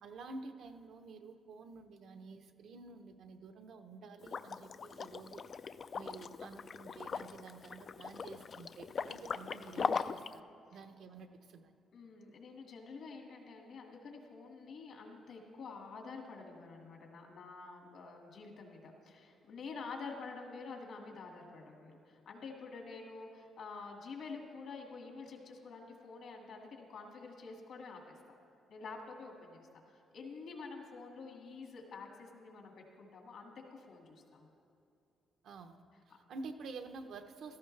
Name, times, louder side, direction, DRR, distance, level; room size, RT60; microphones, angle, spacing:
voice 1, 0.0-5.4 5.9-10.4 10.7-11.7 35.4-37.6, right 3 dB, 70° right, 7 dB, 0.9 m, -50 dB
Liquid, 4.2-10.3, left 5 dB, 45° left, 0.3 m, -40 dB
voice 2, 11.9-28.4 28.7-34.5, left 4 dB, 70° left, 1 dB, 2.1 m, -48 dB
16.0 x 14.0 x 3.3 m, 2.6 s
cardioid pair, 90°, 0 cm